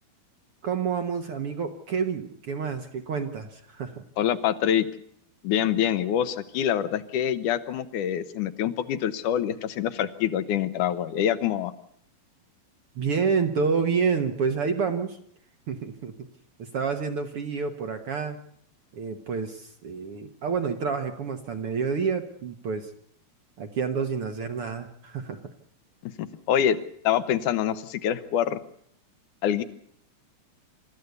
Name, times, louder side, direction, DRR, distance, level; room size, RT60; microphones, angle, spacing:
voice 1, 0.6-4.0 12.9-15.2 15.7-16.1 16.6-18.4 18.9-22.9 23.6-25.4, right 5 dB, 60° right, 7 dB, 1.5 m, -28 dB
voice 2, 4.2-4.9 5.4-11.7 26.0-26.8 27.0-28.6 29.4-29.6, left 10 dB, 70° left, 13 dB, 2.3 m, -25 dB
27.5 x 14.0 x 8.1 m, 0.67 s
omnidirectional pair, 4.3 m